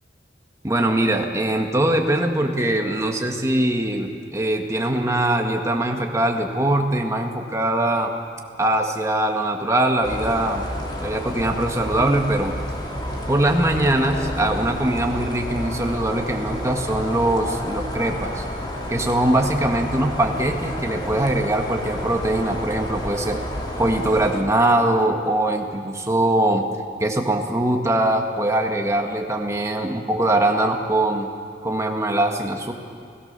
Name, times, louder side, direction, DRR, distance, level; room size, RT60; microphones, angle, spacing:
voice 1, 0.6-8.1 8.6-10.7 11.0-12.6 13.3-18.4 18.9-23.4 23.8-26.7 27.0-31.3 31.6-32.7, right 1 dB, 15° right, 3 dB, 1.8 m, -22 dB
sound 1, 10.0-24.4, equal, 25° left, 3.1 m, -30 dB
30.0 x 16.0 x 6.9 m, 2.5 s
head